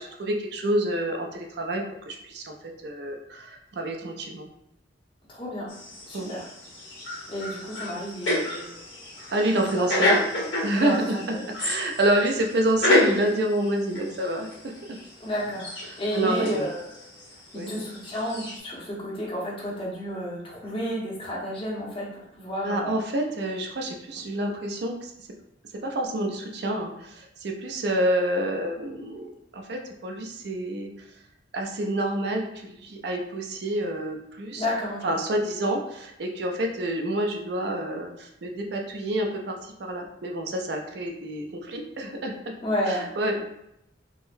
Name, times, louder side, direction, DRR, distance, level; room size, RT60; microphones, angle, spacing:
voice 1, 0.0-2.5 2.8-4.5 6.1-6.3 9.3-10.2 10.6-15.0 15.9-16.7 17.5-17.7 22.6-25.3 25.8-30.9 31.5-34.7 35.0-42.5 42.9-43.4, right 1 dB, 60° right, 2 dB, 0.4 m, -28 dB
voice 2, 5.3-5.7 6.1-6.5 7.3-8.8 9.5-10.2 10.7-11.4 15.2-15.7 16.0-16.8 17.5-23.0 34.5-35.0 42.6-43.0, equal, 30° left, -4 dB, 0.8 m, -31 dB
sound 1, 5.7-18.6, left 1 dB, 90° left, 1.3 m, -30 dB
3.7 x 2.1 x 2.6 m, 0.81 s
head